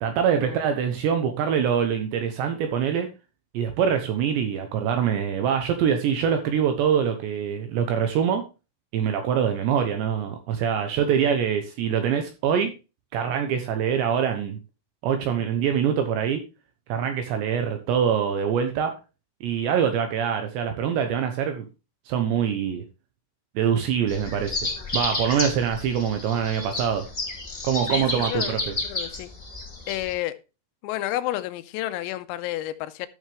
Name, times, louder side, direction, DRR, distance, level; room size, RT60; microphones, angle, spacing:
voice 1, 0.0-3.1 3.5-8.4 8.9-12.7 13.1-14.6 15.0-16.4 16.9-18.9 19.4-21.7 22.1-22.8 23.6-24.6 24.9-27.1 27.6-28.8, right 8 dB, 75° right, 2.7 m, -24 dB
sound 1, 24.1-30.1, left 2 dB, 15° left, 3.1 m, -31 dB
voice 2, 27.9-28.6 28.8-29.3 29.9-30.4 30.8-33.1, left 14 dB, 85° left, 3.3 m, -30 dB
13.0 x 6.4 x 3.5 m
omnidirectional pair, 6.0 m